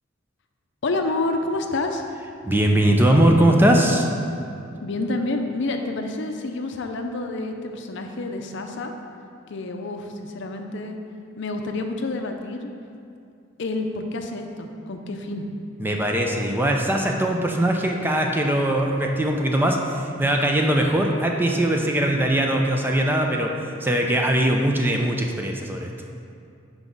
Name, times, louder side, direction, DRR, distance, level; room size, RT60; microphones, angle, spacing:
voice 1, 0.8-2.1 4.8-8.9 9.5-11.0 11.4-12.7 13.6-15.5, left 2 dB, 65° left, 5 dB, 0.6 m, -28 dB
voice 2, 2.4-4.1 15.8-25.9, right 1 dB, 10° right, 2 dB, 0.5 m, -21 dB
6.2 x 4.7 x 5.2 m, 2.5 s
head